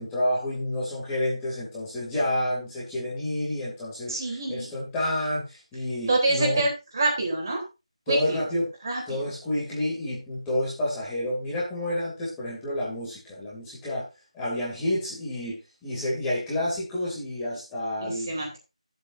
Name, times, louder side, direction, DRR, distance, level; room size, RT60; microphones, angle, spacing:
voice 1, 0.0-6.6 8.1-8.7 9.1-14.1 14.3-18.3, left 1 dB, 10° left, -8 dB, 2.8 m, -29 dB
voice 2, 4.1-4.7 6.1-7.6 8.1-8.4 8.8-9.2 18.0-18.6, right 2 dB, 35° right, -2 dB, 3.9 m, -26 dB
14.0 x 7.7 x 2.7 m, 0.26 s
figure-of-eight pair, 165°, 4 cm